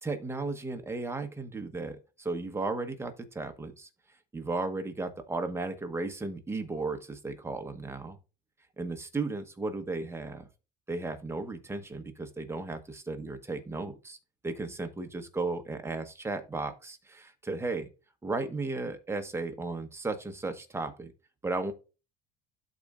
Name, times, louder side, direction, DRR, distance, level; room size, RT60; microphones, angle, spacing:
voice 1, 0.0-3.9 4.3-8.2 8.8-10.5 10.9-14.2 14.4-17.9 18.2-21.1 21.4-21.7, right 3 dB, 15° right, 1.2 m, -35 dB
13.0 x 4.3 x 2.5 m
cardioid pair, 105°, 18 cm